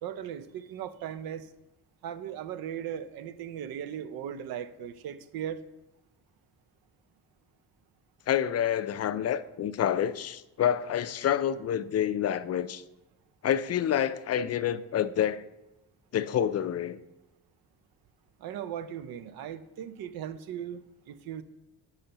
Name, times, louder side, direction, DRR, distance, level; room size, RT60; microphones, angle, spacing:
voice 1, 0.0-1.5 2.0-5.6 18.4-20.8 21.1-21.4, right 9 dB, 70° right, 0.6 m, -38 dB
voice 2, 8.3-12.8 13.4-15.4 16.1-17.0, left 9 dB, 45° left, 0.4 m, -28 dB
8.8 x 5.6 x 2.9 m
cardioid pair, 75°, 37 cm